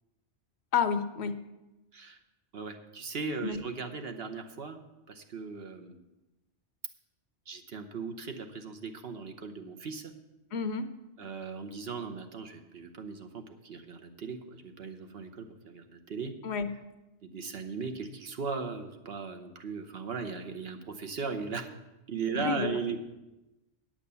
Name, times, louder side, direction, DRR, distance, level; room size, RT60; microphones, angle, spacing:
voice 1, 0.7-1.4 3.4-3.6 10.5-10.9 16.4-16.7 22.3-23.0, left 6 dB, 65° left, 10 dB, 0.9 m, -30 dB
voice 2, 2.5-4.8 5.1-6.0 7.5-10.1 11.2-16.3 17.2-21.7 22.1-23.0, right 5 dB, 60° right, 6 dB, 1.1 m, -38 dB
8.7 x 8.5 x 6.8 m, 1.0 s
omnidirectional pair, 1.2 m